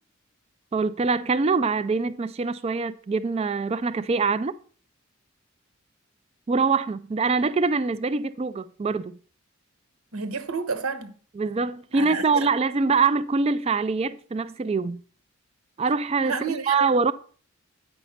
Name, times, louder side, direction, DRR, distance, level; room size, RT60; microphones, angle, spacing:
voice 1, 0.7-4.6 6.5-9.2 11.4-15.0 15.8-17.1, right 4 dB, 30° right, 0.3 m, -24 dB
voice 2, 10.1-11.1 11.9-12.5 16.2-16.9, right 5 dB, 80° right, 1.2 m, -30 dB
9.1 x 5.4 x 5.7 m
head